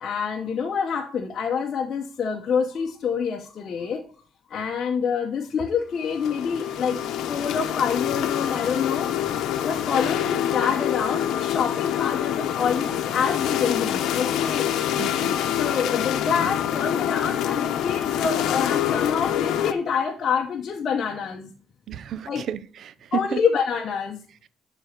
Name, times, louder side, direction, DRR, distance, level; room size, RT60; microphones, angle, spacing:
voice 1, 0.0-4.0 4.5-7.0 7.3-9.1 9.6-14.7 15.6-21.5 22.3-22.4 23.1-24.2, left 6 dB, 45° left, 0.9 m, -26 dB
sound 1, 6.0-19.7, left 10 dB, 85° left, 0.8 m, -26 dB
voice 2, 15.0-15.4 21.9-23.4, right 8 dB, 55° right, 0.5 m, -32 dB
11.5 x 4.1 x 6.6 m
cardioid pair, 150°, 0 cm